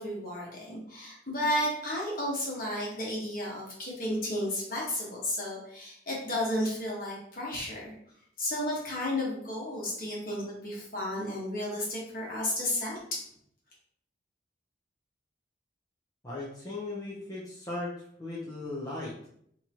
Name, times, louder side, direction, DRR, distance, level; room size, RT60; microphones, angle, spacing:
voice 1, 0.0-7.9 8.4-13.2, left 1 dB, 50° left, -4 dB, 1.3 m, -33 dB
voice 2, 16.2-17.9 18.2-19.3, left 2 dB, 20° left, -8 dB, 0.7 m, -37 dB
3.7 x 2.9 x 2.9 m, 0.68 s
head